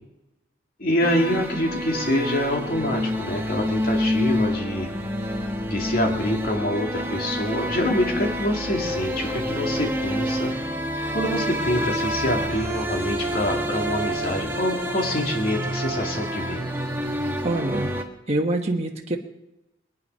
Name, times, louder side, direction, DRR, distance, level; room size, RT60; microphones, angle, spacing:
voice 1, 0.8-4.9 5.7-10.5 11.1-16.6, left 1 dB, 50° left, 0 dB, 2.5 m, -26 dB
sound 1, 1.0-18.0, equal, 10° right, 1.3 m, -28 dB
voice 2, 17.4-17.9 18.3-19.2, right 1 dB, 35° right, 1 dB, 1.2 m, -25 dB
23.0 x 9.6 x 5.5 m, 0.94 s
head